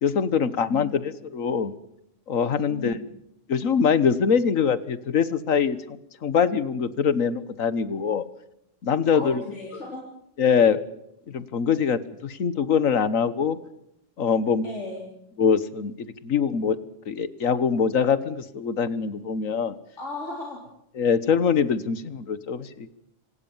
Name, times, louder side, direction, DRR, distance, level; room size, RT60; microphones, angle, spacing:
voice 1, 0.0-1.7 2.3-3.0 3.5-5.8 6.2-8.2 8.8-9.4 10.4-10.8 11.3-13.6 14.2-14.7 15.4-16.8 17.1-19.7 20.9-22.9, left 6 dB, 85° left, 16 dB, 1.7 m, -23 dB
voice 2, 0.6-1.0 2.7-3.0 9.1-10.0 14.6-15.1 20.0-20.6, left 3 dB, 65° left, -1 dB, 4.3 m, -35 dB
26.0 x 18.5 x 7.3 m, 0.77 s
omnidirectional pair, 1.3 m